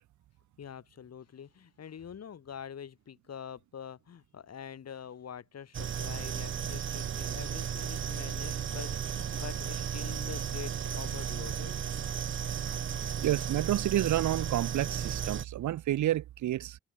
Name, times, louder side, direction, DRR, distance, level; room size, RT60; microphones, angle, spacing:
voice 1, 0.6-11.8, left 8 dB, 50° left, 6.5 m, -45 dB
sound 1, 5.7-15.5, right 8 dB, 35° right, 1.1 m, -34 dB
voice 2, 13.2-16.8, right 13 dB, 60° right, 1.9 m, -29 dB
hypercardioid pair, 50°, 33 cm